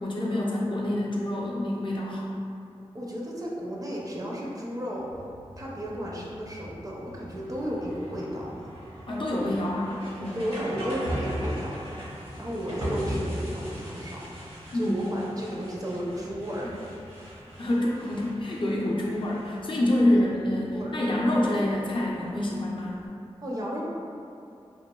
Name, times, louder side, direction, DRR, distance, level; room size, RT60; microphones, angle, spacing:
voice 1, 0.0-2.3 9.1-9.9 10.2-10.4 14.7-15.0 17.6-23.0, left 1 dB, 55° left, -4 dB, 0.4 m, -27 dB
voice 2, 2.9-5.1 5.6-8.7 10.3-11.8 12.4-16.9 20.0-20.4 20.7-21.0 23.4-23.8, equal, 35° right, -4 dB, 0.4 m, -33 dB
sound 1, 5.1-23.1, equal, 65° right, 0.8 m, -39 dB
3.0 x 2.2 x 2.2 m, 2.6 s
wide cardioid pair, 75°, 11 cm